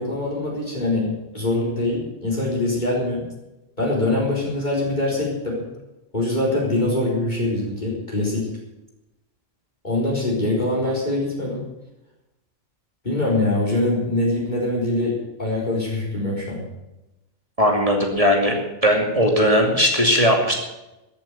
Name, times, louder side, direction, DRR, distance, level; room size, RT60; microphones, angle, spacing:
voice 1, 0.0-3.3 3.8-5.6 6.1-8.5 9.8-11.7 13.0-16.7, left 2 dB, 35° left, -4 dB, 4.6 m, -23 dB
voice 2, 17.6-18.5 18.8-20.6, equal, 25° right, 1 dB, 2.6 m, -18 dB
14.5 x 8.6 x 9.2 m, 0.98 s
omnidirectional pair, 1.4 m